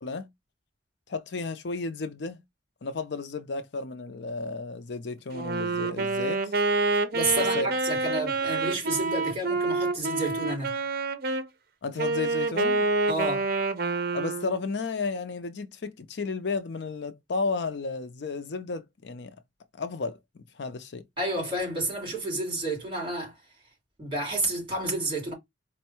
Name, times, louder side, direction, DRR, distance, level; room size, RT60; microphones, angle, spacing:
voice 1, 1.1-2.4 2.8-6.5 7.3-7.7 11.8-12.9 14.1-19.4 19.7-21.0, left 3 dB, 65° left, 0.5 m, -33 dB
Wind instrument woodwind instrument, 5.3-11.5 12.0-14.6, right 3 dB, 55° right, 0.6 m, -27 dB
voice 2, 7.1-10.8 13.1-13.5 21.2-23.4 24.0-25.3, right 1 dB, 30° right, 3.2 m, -30 dB
4.4 x 2.2 x 4.3 m
head